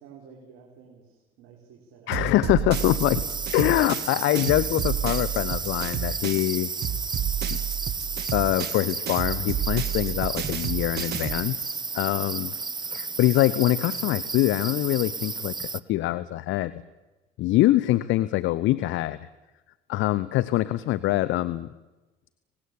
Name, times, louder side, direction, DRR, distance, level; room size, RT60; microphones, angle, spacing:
voice 1, 0.0-2.1 3.8-3.9, right 6 dB, 80° right, -1 dB, 5.1 m, -51 dB
voice 2, 2.1-3.2 3.5-6.7 8.3-12.5 12.9-15.5 15.9-16.7 17.4-19.3 19.9-21.7, left 16 dB, 75° left, 17 dB, 0.9 m, -24 dB
sound 1, 2.1-6.5 6.8-11.5, right 10 dB, 55° right, 1.1 m, -31 dB
sound 2, 2.7-15.8, right 4 dB, 20° right, 0.9 m, -33 dB
26.0 x 19.5 x 8.6 m, 1.1 s
supercardioid pair, 75°, 20 cm